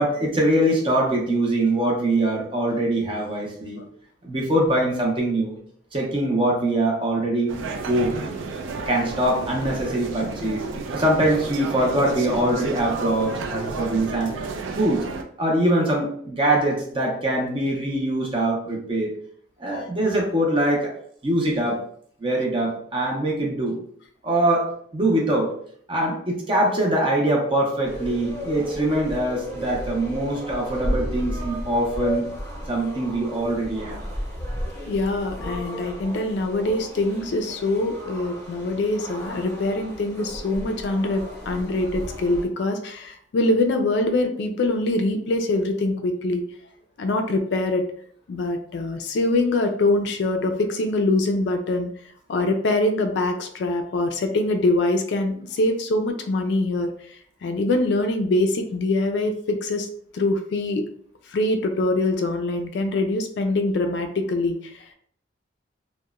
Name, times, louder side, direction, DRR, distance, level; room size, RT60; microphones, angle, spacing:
voice 1, 0.0-3.8 4.2-5.6 5.9-7.6 7.9-8.2 8.9-10.6 10.9-14.4 14.8-15.1 15.4-19.1 19.6-20.9 21.2-21.8 22.2-23.8 24.2-25.5 25.9-32.3 32.7-34.0, right 1 dB, 30° right, -1 dB, 0.5 m, -23 dB
sound 1, 7.5-15.2, right 4 dB, 90° right, 0.3 m, -32 dB
sound 2, 27.8-42.4, equal, 15° left, 0.7 m, -34 dB
voice 2, 34.9-46.4 47.0-47.8 48.3-51.9 52.3-56.9 57.4-59.9 60.1-60.8 61.3-64.8, left 2 dB, 65° left, 6 dB, 0.3 m, -24 dB
2.8 x 2.1 x 2.3 m, 0.62 s
head